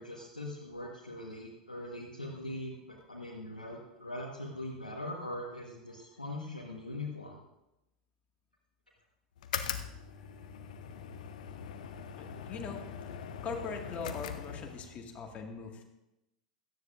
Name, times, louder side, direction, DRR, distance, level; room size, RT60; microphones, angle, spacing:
voice 1, 0.0-7.4, left 1 dB, 85° left, -3 dB, 1.4 m, -41 dB
sound 1, 9.4-15.0, left 8 dB, 60° left, 0.8 m, -41 dB
voice 2, 12.2-12.8 13.4-15.8, left 5 dB, 30° left, 2 dB, 1.9 m, -41 dB
17.0 x 12.5 x 2.5 m, 0.93 s
figure-of-eight pair, 85°, 4 cm